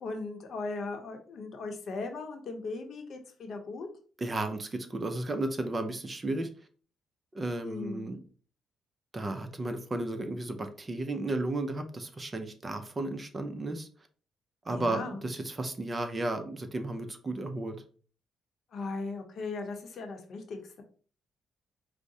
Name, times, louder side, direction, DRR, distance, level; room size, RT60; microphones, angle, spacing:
voice 1, 0.0-3.9 7.6-8.1 14.7-15.2 18.7-20.8, left 3 dB, 60° left, 4 dB, 0.7 m, -38 dB
voice 2, 4.2-6.5 7.3-8.2 9.1-13.9 14.7-17.8, right 2 dB, 30° right, 7 dB, 0.5 m, -33 dB
4.7 x 2.0 x 2.6 m, 0.41 s
cardioid pair, 90°, 0 cm